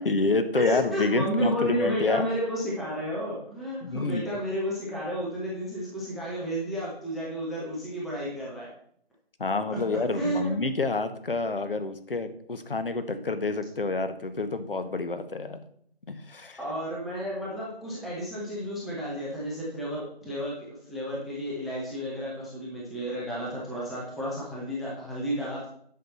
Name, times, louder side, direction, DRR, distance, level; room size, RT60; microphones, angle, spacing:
voice 1, 0.0-2.3 3.8-4.2 9.4-15.6 16.1-16.6, left 3 dB, 60° left, 10 dB, 1.0 m, -28 dB
voice 2, 0.5-8.7 9.7-9.8 10.1-10.6 16.6-25.7, equal, ahead, -6 dB, 0.5 m, -32 dB
9.0 x 5.8 x 3.9 m, 0.65 s
figure-of-eight pair, 160°, 31 cm